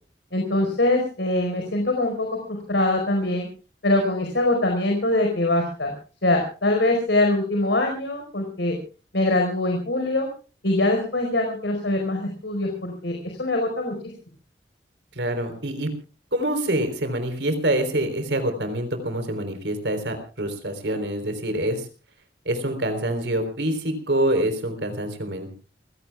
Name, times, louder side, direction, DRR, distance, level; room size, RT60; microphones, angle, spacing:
voice 1, 0.3-3.5 3.8-5.9 6.2-8.8 9.1-10.3 10.6-14.0, left 2 dB, 85° left, 3 dB, 4.7 m, -23 dB
voice 2, 15.1-15.9 16.3-21.9 22.5-25.6, right 1 dB, 80° right, 7 dB, 3.7 m, -26 dB
29.0 x 16.0 x 2.3 m, 0.35 s
head